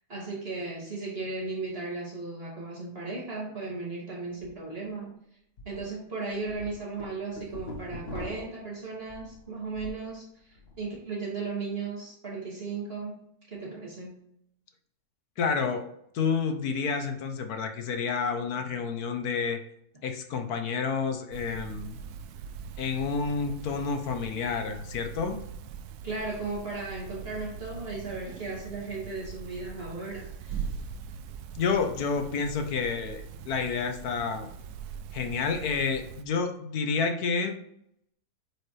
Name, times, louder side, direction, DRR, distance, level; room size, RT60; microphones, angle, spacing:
voice 1, 0.1-5.2 5.6-10.3 10.8-13.2 13.5-14.2 26.0-30.6, right 3 dB, 40° right, -4 dB, 2.6 m, -36 dB
sound 1, 4.3-4.5 4.9-5.0 5.6-5.8 6.2-10.0 10.4-10.8, left 1 dB, 50° left, 1.8 m, -42 dB
voice 2, 15.4-15.9 16.1-19.6 20.0-22.0 22.8-25.4 31.5-34.5 35.1-37.6, left 5 dB, 75° left, 6 dB, 1.4 m, -29 dB
sound 2, 21.3-36.2, right 7 dB, 85° right, 1.1 m, -42 dB
8.7 x 5.0 x 3.2 m, 0.72 s
omnidirectional pair, 1.6 m